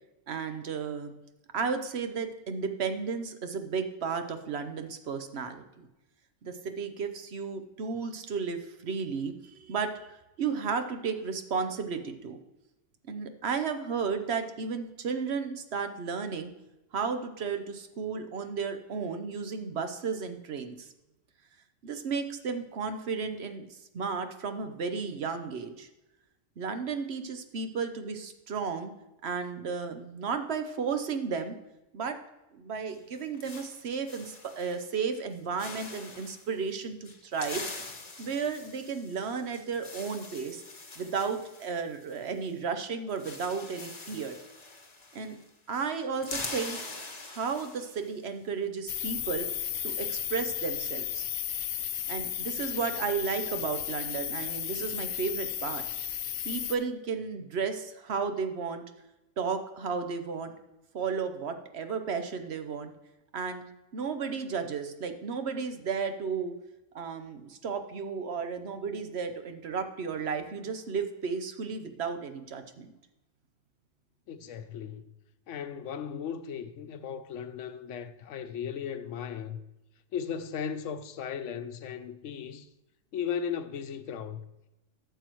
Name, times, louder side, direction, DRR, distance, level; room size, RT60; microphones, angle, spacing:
voice 1, 0.3-1.1 1.5-5.9 6.4-12.4 13.1-16.5 16.9-20.9 21.8-25.9 26.6-28.9 29.2-31.5 31.9-32.2 32.5-37.6 38.2-40.6 41.0-44.4 45.1-45.4 45.7-46.8 47.3-49.5 49.8-51.2 52.1-55.8 56.4-58.8 59.4-60.5 60.9-62.9 63.3-63.6 63.9-66.6 66.9-72.9, right 5 dB, 60° right, 1.0 m, -33 dB
sound 1, 32.9-34.9 35.1-35.3 35.6-36.5 37.0-42.5 42.8-42.9 43.1-45.5 45.8-48.2, left 3 dB, 35° left, 1.0 m, -43 dB
sound 2, 48.9-56.8, left 10 dB, 60° left, 0.6 m, -34 dB
voice 2, 74.3-75.1 75.5-79.6 80.1-82.7 83.1-84.4, left 8 dB, 75° left, 1.0 m, -36 dB
12.0 x 7.0 x 3.0 m
omnidirectional pair, 1.3 m